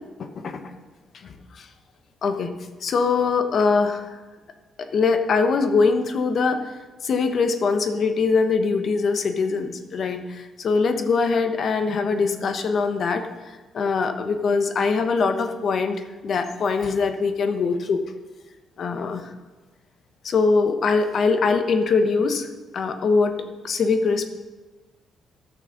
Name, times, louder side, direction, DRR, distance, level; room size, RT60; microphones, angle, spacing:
voice 1, 0.2-0.6 1.6-1.7 2.2-2.5 2.8-4.2 4.8-6.6 7.0-13.2 13.7-16.0 16.2-18.0 18.8-19.3 20.2-22.5 22.7-23.3 23.6-24.2, left 4 dB, 55° left, 7 dB, 1.1 m, -22 dB
12.5 x 6.4 x 6.6 m, 1.3 s
cardioid pair, 90°, 0 cm